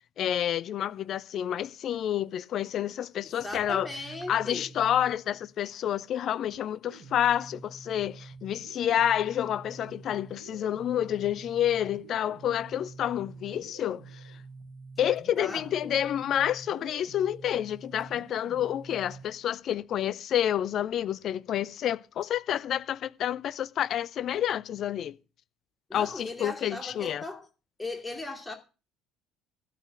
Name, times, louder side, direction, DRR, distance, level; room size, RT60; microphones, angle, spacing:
voice 1, 0.2-3.9 4.3-14.0 15.0-25.2 25.9-27.2, left 10 dB, 45° left, 0.5 m, -29 dB
voice 2, 3.2-4.7 15.4-16.0 25.9-27.5 27.8-28.5, left 2 dB, 15° left, 2.5 m, -38 dB
sound 1, 3.4-5.5 6.5-19.4, right 4 dB, 80° right, 2.5 m, -48 dB
12.5 x 5.1 x 7.6 m
figure-of-eight pair, 55°, 0 cm